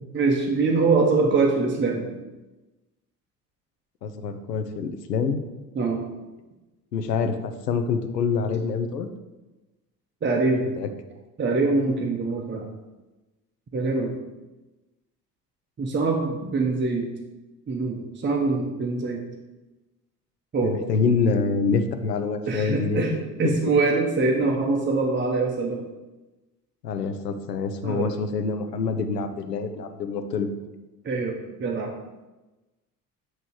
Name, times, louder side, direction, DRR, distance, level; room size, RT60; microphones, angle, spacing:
voice 1, 0.1-2.1 5.7-6.0 10.2-10.6 11.4-12.7 13.7-14.2 15.8-17.1 17.7-19.2 20.5-20.8 22.5-25.8 27.8-28.1 31.0-31.9, right 3 dB, 25° right, 0 dB, 0.9 m, -24 dB
voice 2, 4.0-5.4 6.9-9.1 10.8-10.9 20.6-23.2 23.4-23.6 26.8-30.5, left 5 dB, 90° left, 9 dB, 0.6 m, -26 dB
7.8 x 3.1 x 4.6 m, 1.1 s
figure-of-eight pair, 55°, 47 cm